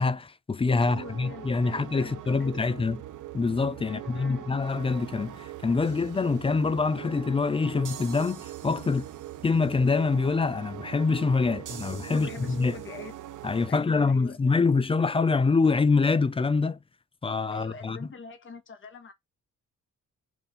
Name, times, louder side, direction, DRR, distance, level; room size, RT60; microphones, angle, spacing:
voice 1, 0.0-3.0 3.3-9.1 9.4-12.7 13.4-16.8 17.2-18.1, left 4 dB, 20° left, 0.4 m, -25 dB
sound 1, 0.6-13.7, right 13 dB, 75° right, 0.6 m, -42 dB
voice 2, 0.8-3.0 3.8-4.5 12.1-13.2 13.7-14.4 17.5-19.1, left 4 dB, 40° left, 1.5 m, -43 dB
sound 2, 5.8-6.7 7.8-9.7 11.7-13.6, right 8 dB, 90° right, 1.8 m, -49 dB
6.1 x 3.4 x 5.0 m
wide cardioid pair, 175°, 31 cm